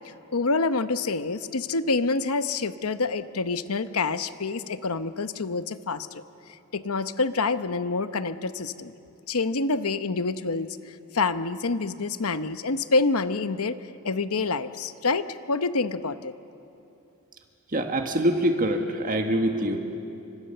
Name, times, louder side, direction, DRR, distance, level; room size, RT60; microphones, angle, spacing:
voice 1, 0.3-6.2 6.7-8.9 9.3-10.7 11.1-13.8 14.0-16.3, left 3 dB, 70° left, 11 dB, 0.9 m, -27 dB
voice 2, 17.7-19.8, right 1 dB, 40° right, 4 dB, 1.6 m, -24 dB
29.5 x 25.5 x 6.8 m, 2.7 s
head